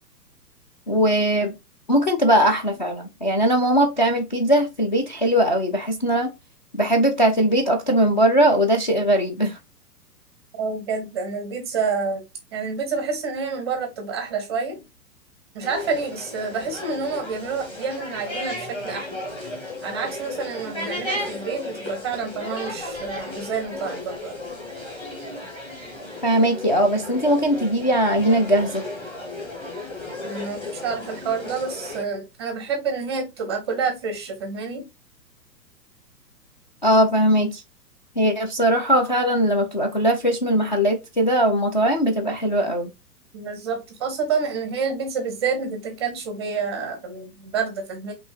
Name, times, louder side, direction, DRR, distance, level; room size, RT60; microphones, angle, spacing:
voice 1, 0.9-1.5 1.9-6.3 6.7-9.6 26.2-28.8 36.8-37.6 38.2-42.9, equal, 30° left, 0.4 m, -20 dB
voice 2, 10.6-12.2 12.5-14.8 15.5-19.2 19.8-24.4 30.2-34.9 43.3-48.1, right 5 dB, 15° right, 0.5 m, -28 dB
sound 1, 15.6-32.0, left 1 dB, 10° left, 1.0 m, -34 dB
5.2 x 2.7 x 2.9 m
figure-of-eight pair, 115°, 49 cm